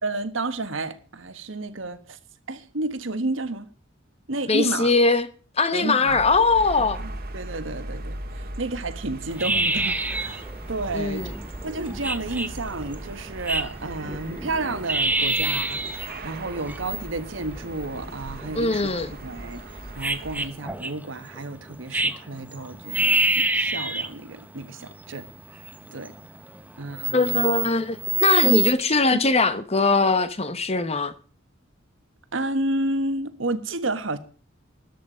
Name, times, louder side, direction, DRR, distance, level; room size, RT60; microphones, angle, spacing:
voice 1, 0.0-2.2 2.5-3.7 4.3-4.9 5.7-6.2 6.8-10.4 10.7-11.3 11.6-18.9 19.2-19.6 19.9-25.3 25.9-26.1 26.8-27.4 28.4-28.6 29.1-29.2 32.3-34.2, right 2 dB, 70° right, 1.4 m, -31 dB
voice 2, 4.5-5.3 5.6-7.0 10.9-11.3 18.5-19.1 27.1-31.1, left 3 dB, 30° left, 1.0 m, -21 dB
sound 1, 6.1-20.5, right 1 dB, 50° right, 1.7 m, -38 dB
sound 2, 9.3-28.7, right 2 dB, 10° right, 0.9 m, -28 dB
13.5 x 11.0 x 5.0 m
head